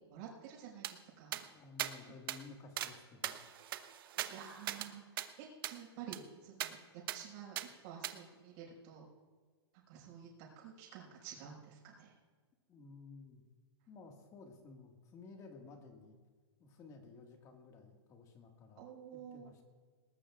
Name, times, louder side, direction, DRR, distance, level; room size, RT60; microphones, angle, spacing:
voice 1, 0.1-1.4 2.0-2.1 4.2-7.6 7.8-9.1 9.9-12.1 18.8-19.5, right 8 dB, 40° right, -2 dB, 5.6 m, -51 dB
sound 1, 0.8-0.9 1.3-1.4 1.8-1.9 2.3-2.4 2.8-2.9 3.2-4.9 5.2-5.3 5.6-5.8 6.1-6.2 6.6-6.7 7.1-7.2 7.6-7.7 8.0-8.1, right 12 dB, 55° right, 1.0 m, -40 dB
voice 2, 1.5-3.4 12.7-13.4 13.9-16.1 16.6-19.6, left 4 dB, 25° left, 3 dB, 1.8 m, -55 dB
20.0 x 19.0 x 2.5 m, 1.5 s
hypercardioid pair, 150°, 14 cm